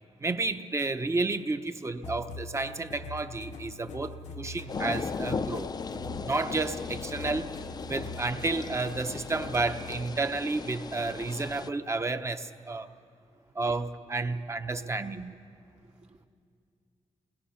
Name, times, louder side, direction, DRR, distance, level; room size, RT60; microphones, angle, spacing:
voice 1, 0.2-5.7 6.2-7.6 7.9-12.9 13.6-15.4, right 3 dB, 25° right, 9 dB, 0.8 m, -31 dB
sound 1, 2.0-10.1, left 3 dB, 85° left, 1.0 m, -43 dB
sound 2, 4.7-11.7, left 5 dB, 35° left, 0.4 m, -37 dB
voice 2, 14.7-15.2 15.8-16.3, right 2 dB, 75° right, 0 dB, 1.9 m, -53 dB
29.0 x 21.0 x 5.7 m, 2.4 s
wide cardioid pair, 145°, 12 cm